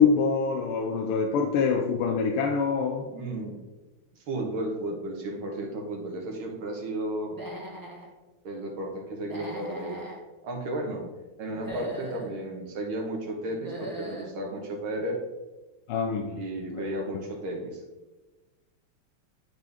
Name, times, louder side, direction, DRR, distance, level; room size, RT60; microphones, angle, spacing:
voice 1, 0.0-3.1 15.9-16.4 16.7-16.8, left 5 dB, 90° left, 1.6 m, -25 dB
voice 2, 3.1-3.6 4.3-7.3 8.4-10.0 10.4-11.0 11.4-15.2 16.3-17.8, right 1 dB, 70° right, 2.1 m, -33 dB
Human voice / Animal, 7.2-8.1 9.2-10.2 11.5-12.3 13.5-14.3, right 1 dB, 15° right, 0.7 m, -40 dB
10.5 x 4.1 x 3.5 m
omnidirectional pair, 2.4 m